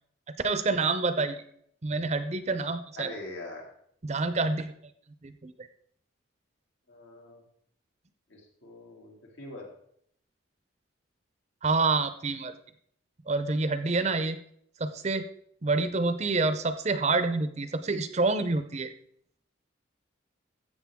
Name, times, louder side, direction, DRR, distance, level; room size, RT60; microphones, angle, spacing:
voice 1, 0.4-1.4 1.8-3.1 4.0-4.7 5.2-5.5 11.6-12.5 13.3-14.4 14.8-15.3 15.6-18.9, right 3 dB, 35° right, 11 dB, 0.6 m, -27 dB
voice 2, 3.0-3.7 6.9-7.4 8.3-9.7, left 2 dB, 75° left, -1 dB, 2.7 m, -43 dB
13.5 x 7.8 x 3.6 m, 0.68 s
head